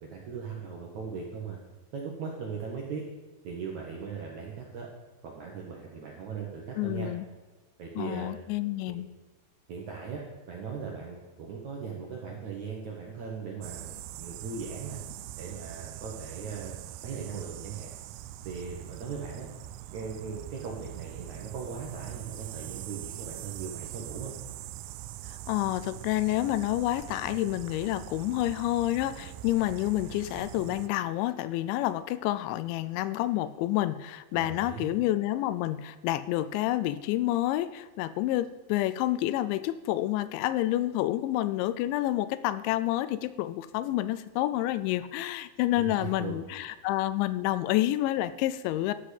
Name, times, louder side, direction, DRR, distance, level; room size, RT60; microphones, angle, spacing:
voice 1, 0.0-1.6 1.9-3.0 3.4-4.9 5.2-7.1 7.8-8.3 9.7-10.2 10.5-15.0 15.4-17.9 18.4-19.5 19.9-24.3 34.3-34.9 45.8-46.4, right 5 dB, 70° right, -1 dB, 1.8 m, -39 dB
voice 2, 6.8-7.3 8.0-9.1 25.5-48.9, left 15 dB, 90° left, 14 dB, 2.9 m, -29 dB
sound 1, 13.6-30.9, right 14 dB, 90° right, 2.3 m, -42 dB
12.5 x 5.0 x 8.3 m, 1.2 s
omnidirectional pair, 5.2 m